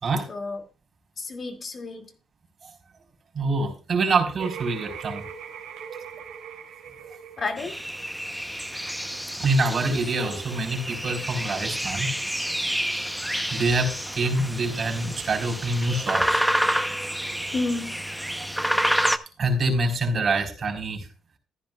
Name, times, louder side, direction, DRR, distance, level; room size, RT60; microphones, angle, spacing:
voice 1, 0.3-0.6 1.2-2.1 7.4-7.8 17.5-17.9, left 3 dB, 40° left, 2.1 m, -30 dB
voice 2, 3.3-5.2 9.4-12.1 13.5-16.4 19.4-21.1, right 2 dB, 45° right, 3.8 m, -25 dB
sound 1, 4.4-9.1, right 7 dB, 85° right, 2.4 m, -41 dB
sound 2, 7.6-19.2, equal, ahead, 0.7 m, -28 dB
14.5 x 10.5 x 2.3 m
cardioid pair, 90°, 0 cm